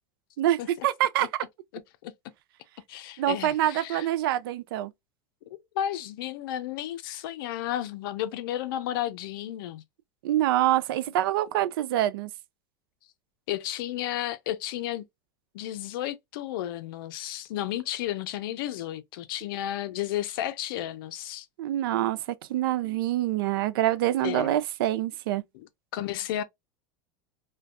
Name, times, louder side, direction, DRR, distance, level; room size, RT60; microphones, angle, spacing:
voice 1, 0.4-1.3 3.2-4.9 10.2-12.3 21.6-22.2 22.5-25.4, right 13 dB, 80° right, 0.4 m, -25 dB
voice 2, 2.9-4.1 5.8-9.8 13.5-15.0 15.5-21.5 24.2-24.6 25.5-25.7 25.9-26.4, left 12 dB, 75° left, 0.5 m, -32 dB
2.5 x 2.2 x 2.3 m
supercardioid pair, 125°, 12 cm